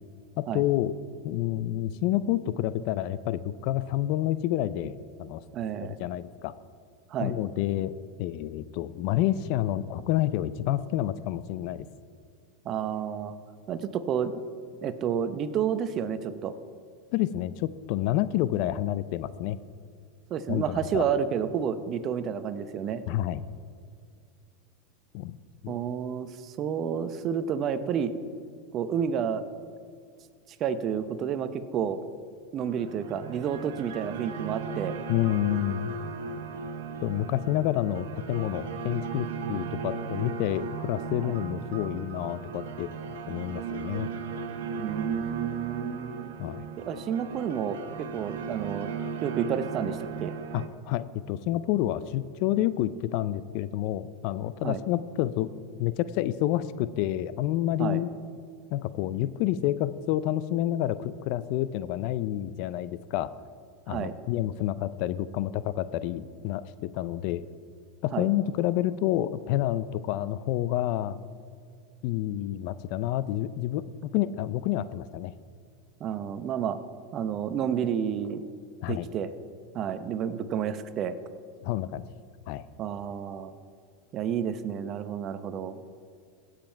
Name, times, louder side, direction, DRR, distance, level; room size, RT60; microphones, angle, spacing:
voice 1, 0.4-1.0 1.2-5.4 6.0-6.5 7.2-11.9 17.1-19.6 20.5-21.1 23.1-23.4 25.1-25.4 25.6-25.7 35.1-36.0 37.0-42.9 43.3-44.1 46.4-46.6 50.5-55.5 55.8-58.1 58.7-63.3 63.9-67.4 68.0-71.2 72.0-75.3 78.8-79.1 81.6-82.0 82.5-82.6, left 13 dB, 60° left, 16 dB, 0.5 m, -29 dB
voice 2, 5.5-6.0 7.1-7.4 12.6-13.3 13.7-14.3 14.8-16.5 20.3-23.0 25.7-28.1 28.7-29.4 30.6-32.0 32.5-34.9 41.2-41.4 44.8-46.3 46.8-48.9 49.2-50.3 54.6-54.8 57.8-58.0 63.9-64.1 68.1-68.3 76.0-76.8 77.1-78.4 78.9-79.3 79.7-81.2 82.8-83.6 84.1-85.8, right 8 dB, 40° right, 12 dB, 0.8 m, -30 dB
sound 1, 32.6-50.7, right 6 dB, 80° right, 1.1 m, -36 dB
16.5 x 7.5 x 4.5 m, 2.2 s
hypercardioid pair, 115°, 0 cm